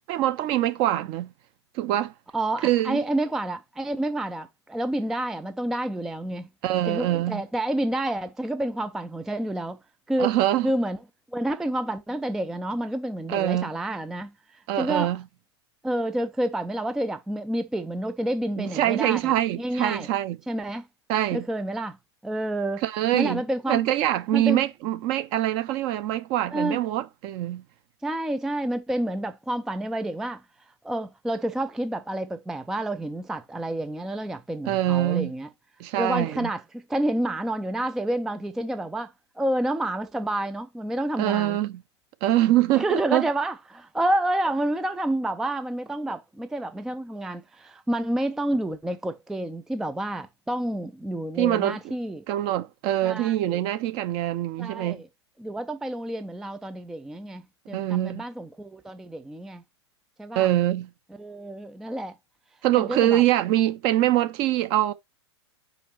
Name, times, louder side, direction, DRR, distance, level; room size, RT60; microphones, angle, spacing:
voice 1, 0.1-1.3 1.7-2.1 2.6-3.0 6.6-7.4 10.2-10.7 13.3-13.7 14.7-15.2 18.6-20.4 21.1-21.4 22.8-23.4 23.7-27.6 34.7-35.3 35.8-36.5 41.2-41.8 42.2-43.2 51.4-51.8 52.3-55.0 57.7-58.2 60.4-60.9 62.6-64.9, right 13 dB, 35° right, 0.6 m, -24 dB
voice 2, 2.3-6.5 6.9-9.8 10.1-10.3 10.6-11.0 11.3-15.2 15.8-20.1 20.5-20.9 21.3-22.0 22.2-22.8 23.1-23.8 24.3-24.6 26.5-26.8 28.0-35.5 35.9-41.6 42.7-52.2 53.0-53.6 54.6-55.1 55.4-59.6 60.2-60.5 61.2-62.2 62.8-63.2, right 1 dB, 5° right, 0.3 m, -29 dB
5.0 x 5.0 x 4.4 m
figure-of-eight pair, 100°, 15 cm